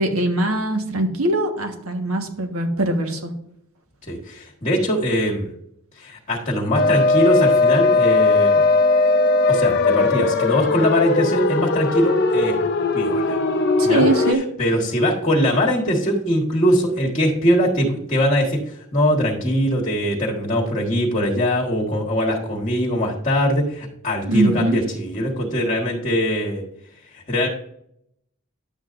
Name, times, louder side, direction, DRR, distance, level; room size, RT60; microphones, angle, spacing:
voice 1, 0.0-3.3 13.8-14.4 24.3-24.8, right 2 dB, 90° right, 4 dB, 1.4 m, -21 dB
voice 2, 4.1-5.5 5.9-8.6 9.5-12.6 12.9-13.4 13.8-26.6 27.1-27.5, equal, 35° left, -3 dB, 1.5 m, -21 dB
sound 1, 6.8-14.3, left 3 dB, 50° left, 0.6 m, -18 dB
10.5 x 8.0 x 2.6 m, 0.72 s
head